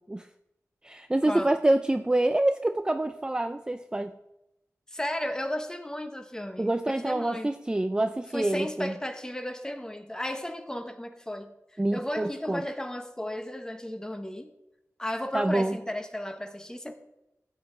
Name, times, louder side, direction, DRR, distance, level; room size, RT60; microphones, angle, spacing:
voice 1, 0.8-4.1 6.6-8.9 11.8-12.6 15.3-15.8, right 1 dB, 15° right, 8 dB, 0.4 m, -26 dB
voice 2, 4.9-6.7 7.0-7.5 8.3-11.5 11.9-14.5 15.0-16.9, left 1 dB, 10° left, 7 dB, 1.0 m, -34 dB
14.0 x 8.0 x 3.8 m, 0.88 s
wide cardioid pair, 85°, 5 cm